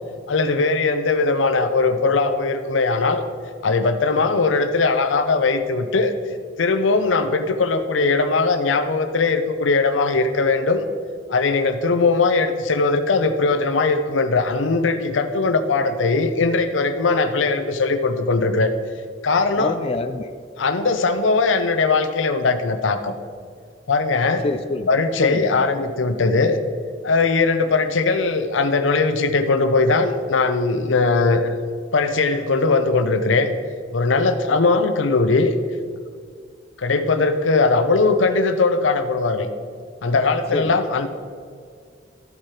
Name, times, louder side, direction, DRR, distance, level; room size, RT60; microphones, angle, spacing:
voice 1, 0.3-3.2 3.6-6.1 6.6-10.8 11.3-18.7 19.2-19.7 20.6-23.1 23.9-24.4 24.9-26.6 27.0-31.5 31.9-33.5 33.9-35.6 36.8-39.5 40.0-41.1, left 3 dB, 90° left, 9 dB, 0.7 m, -20 dB
voice 2, 19.6-20.3 24.4-24.9 25.2-25.7 40.5-40.8, left 3 dB, 30° left, 7 dB, 0.3 m, -26 dB
13.0 x 4.8 x 4.4 m, 2.1 s
head